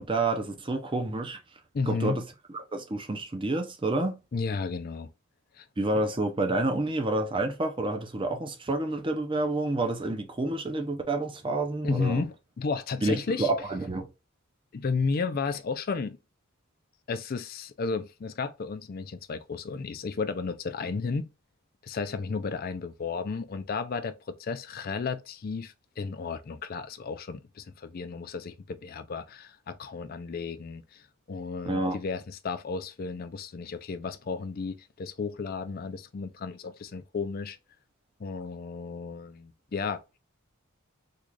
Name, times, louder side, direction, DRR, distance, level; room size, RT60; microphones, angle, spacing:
voice 1, 0.0-1.4 1.9-2.3 2.5-4.2 5.8-12.2 13.0-14.1 31.6-32.0, right 2 dB, 25° right, 0.5 m, -29 dB
voice 2, 1.7-2.2 4.3-5.1 5.6-5.7 11.8-13.5 14.7-16.2 17.1-21.3 21.8-37.6 38.2-40.0, left 4 dB, 45° left, 0.4 m, -33 dB
3.7 x 2.4 x 3.1 m
head